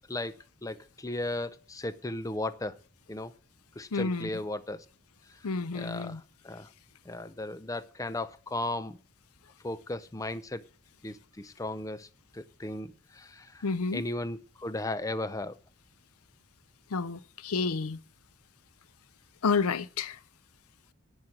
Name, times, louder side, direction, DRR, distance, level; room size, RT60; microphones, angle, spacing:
voice 1, 0.6-2.8 3.1-3.3 3.8-4.9 5.3-5.4 5.7-6.7 7.1-9.0 9.6-10.6 11.0-12.1 12.3-13.7 13.9-15.5, left 2 dB, 15° left, 0.5 m, -36 dB
voice 2, 3.9-4.3 5.4-6.2 13.6-14.0 16.9-18.0 19.4-20.2, left 4 dB, 80° left, 0.6 m, -30 dB
11.0 x 7.1 x 7.5 m
head